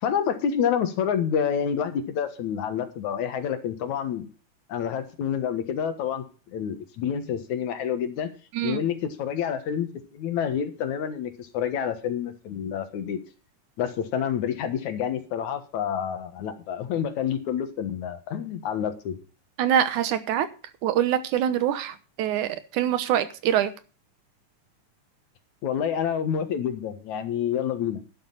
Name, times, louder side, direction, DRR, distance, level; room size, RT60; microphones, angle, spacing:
voice 1, 0.0-4.3 4.7-8.3 8.6-13.2 13.8-19.1 25.6-28.0, left 8 dB, 75° left, 8 dB, 2.7 m, -28 dB
voice 2, 19.6-20.5 20.8-23.7, right 10 dB, 85° right, 12 dB, 2.4 m, -24 dB
11.5 x 11.5 x 4.0 m, 0.35 s
omnidirectional pair, 3.5 m